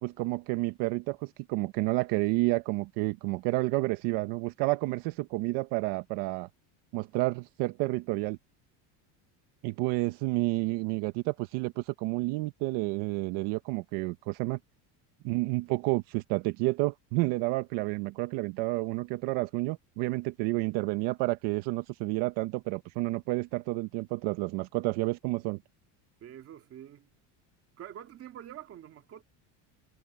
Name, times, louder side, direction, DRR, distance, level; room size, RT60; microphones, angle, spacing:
voice 1, 0.0-6.5 6.9-8.4 9.6-14.6 15.2-25.6, right 21 dB, 60° right, 1.0 m, -30 dB
voice 2, 26.2-27.1 27.7-29.2, right 11 dB, 30° right, 2.0 m, -46 dB
cardioid pair, 165°, 45 cm